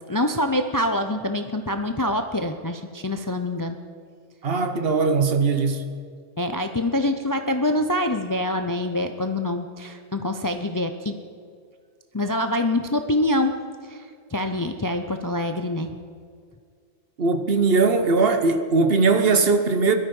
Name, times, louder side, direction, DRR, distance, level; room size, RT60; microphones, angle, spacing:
voice 1, 0.1-3.8 6.4-11.2 12.1-13.6 13.9-14.0 14.3-16.0, left 1 dB, 25° left, 7 dB, 0.5 m, -25 dB
voice 2, 4.4-5.8 17.2-20.0, right 4 dB, 55° right, 8 dB, 1.2 m, -20 dB
19.5 x 12.5 x 5.4 m, 2.1 s
omnidirectional pair, 1.2 m